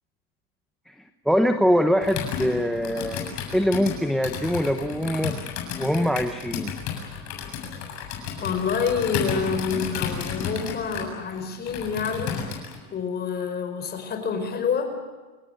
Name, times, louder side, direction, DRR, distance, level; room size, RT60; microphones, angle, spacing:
voice 1, 1.2-5.4 5.8-6.7, equal, ahead, 7 dB, 0.9 m, -23 dB
Computer keyboard, 2.0-12.8, left 7 dB, 40° left, 7.7 m, -32 dB
voice 2, 8.4-12.4 12.9-15.0, left 5 dB, 25° left, 6 dB, 4.9 m, -27 dB
29.0 x 18.0 x 9.1 m, 1.3 s
supercardioid pair, 160°, 41 cm